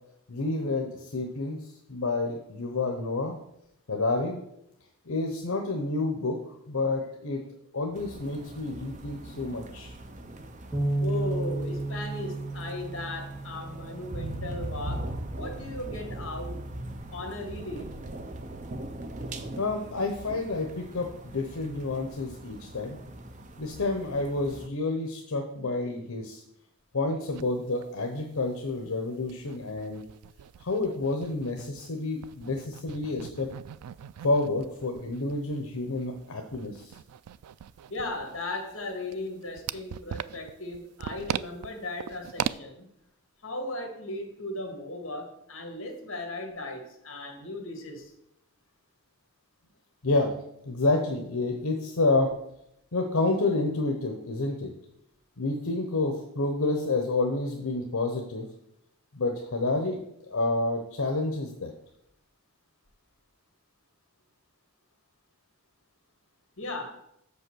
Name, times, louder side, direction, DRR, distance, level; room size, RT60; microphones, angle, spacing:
voice 1, 0.3-3.4 3.9-4.4 5.1-6.4 6.7-7.4 7.7-9.9 19.6-23.0 23.6-26.4 26.9-30.0 30.6-33.5 34.2-36.9 50.0-50.4 50.6-52.3 52.9-54.7 55.4-58.5 59.1-60.0 60.3-61.7, left 2 dB, 75° left, 2 dB, 0.9 m, -29 dB
sound 1, 7.9-24.7, right 1 dB, 35° right, 0.5 m, -40 dB
Bass guitar, 10.7-15.1 15.8-17.0, right 2 dB, ahead, 1.6 m, -34 dB
voice 2, 11.0-16.6 17.1-18.0 37.9-42.9 43.4-48.1 66.6-67.0, left 2 dB, 60° left, 4 dB, 1.7 m, -37 dB
sound 2, 27.3-27.5 27.8-27.9 28.2-28.3 28.8-31.9 32.2-42.6, right 9 dB, 90° right, 0.3 m, -39 dB
6.7 x 5.4 x 6.2 m, 0.78 s
head